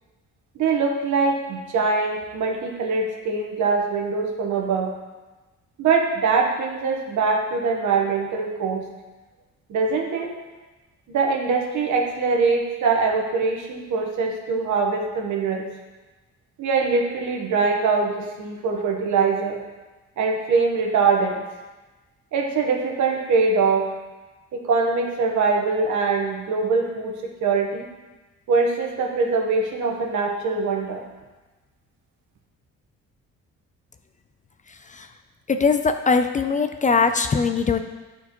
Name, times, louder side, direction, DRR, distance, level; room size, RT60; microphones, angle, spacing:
voice 1, 0.5-4.9 5.8-8.8 9.7-10.3 11.1-15.6 16.6-19.6 20.2-21.4 22.3-23.9 24.5-27.9 28.5-31.0, right 4 dB, 75° right, 1 dB, 1.2 m, -23 dB
voice 2, 35.5-37.8, left 5 dB, 25° left, 7 dB, 0.4 m, -21 dB
9.9 x 4.5 x 3.0 m, 1.2 s
cardioid pair, 90°, 30 cm